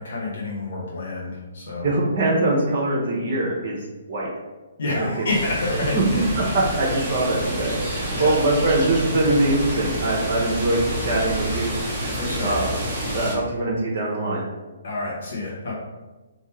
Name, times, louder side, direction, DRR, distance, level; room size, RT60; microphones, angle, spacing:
voice 1, 0.0-1.9 4.8-6.2 8.1-8.3 12.1-12.5 14.8-15.7, left 2 dB, 60° left, -5 dB, 1.1 m, -28 dB
voice 2, 1.8-3.8 4.1-4.3 4.9-5.1 5.9-12.7 13.0-14.5, right 2 dB, 40° right, -4 dB, 1.0 m, -23 dB
sound 1, 5.3-13.3, right 1 dB, 20° right, 1.3 m, -28 dB
3.6 x 2.8 x 4.4 m, 1.2 s
figure-of-eight pair, 130°, 0 cm